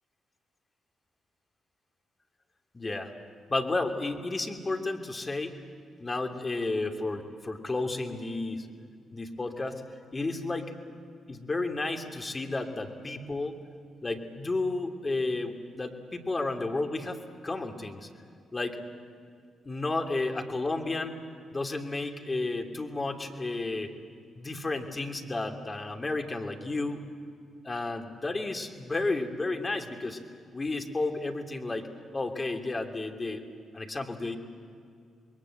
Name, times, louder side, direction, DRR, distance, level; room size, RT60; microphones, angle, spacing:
voice 1, 2.7-3.1 3.5-5.6 6.0-8.7 9.1-9.8 10.1-10.7 11.3-13.6 14.0-18.1 18.5-18.8 19.6-21.2 21.5-23.9 24.4-27.0 27.6-30.2 30.5-31.9 32.1-33.4 33.7-34.4, left 2 dB, 30° left, 3 dB, 2.9 m, -32 dB
27.0 x 22.0 x 7.8 m, 2.3 s
hypercardioid pair, 40°, 0 cm